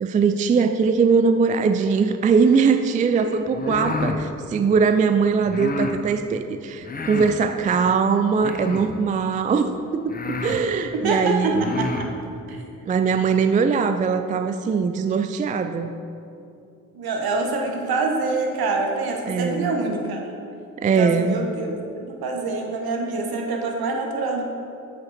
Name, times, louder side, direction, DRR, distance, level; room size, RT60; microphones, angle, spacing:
voice 1, 0.0-11.6 12.9-15.9 19.3-19.7 20.8-21.4, right 5 dB, 20° right, 9 dB, 0.3 m, -21 dB
sound 1, 3.5-4.2 5.5-6.0 6.8-7.4 8.4-9.0 9.7-9.8 10.1-10.6 11.4-12.1, left 3 dB, 20° left, 0.8 m, -29 dB
voice 2, 3.6-4.0 11.0-12.1 12.5-12.6 16.9-20.2 21.0-21.7 22.0-24.4, right 3 dB, 55° right, 2 dB, 1.4 m, -26 dB
7.6 x 7.2 x 4.2 m, 2.7 s
hypercardioid pair, 45°, 44 cm